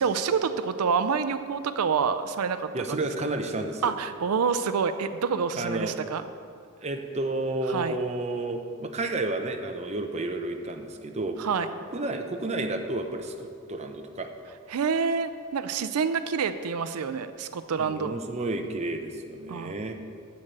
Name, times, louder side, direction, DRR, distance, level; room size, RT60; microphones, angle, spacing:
voice 1, 0.0-3.0 3.8-6.2 7.7-8.0 11.4-11.7 14.7-18.1 19.5-19.7, right 6 dB, 80° right, 11 dB, 0.4 m, -27 dB
voice 2, 2.7-3.9 5.6-6.0 6.8-11.4 11.9-14.3 17.8-19.9, right 2 dB, 30° right, 5 dB, 0.7 m, -31 dB
7.8 x 7.2 x 6.7 m, 2.3 s
head